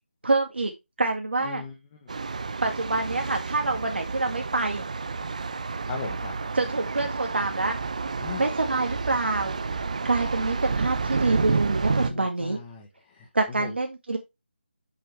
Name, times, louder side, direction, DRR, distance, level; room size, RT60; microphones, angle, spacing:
voice 1, 0.2-0.7 1.0-1.6 2.6-4.8 6.5-7.7 8.4-9.6 10.0-12.6 13.3-14.2, right 3 dB, 70° right, 2 dB, 2.0 m, -26 dB
voice 2, 1.4-2.1 5.9-6.3 8.2-8.4 11.9-13.3 13.6-13.7, left 5 dB, 15° left, 1 dB, 1.1 m, -38 dB
Thunder, 2.1-12.1, right 4 dB, 40° right, 0.7 m, -30 dB
7.9 x 6.4 x 3.4 m, 0.22 s
figure-of-eight pair, 175°, 6 cm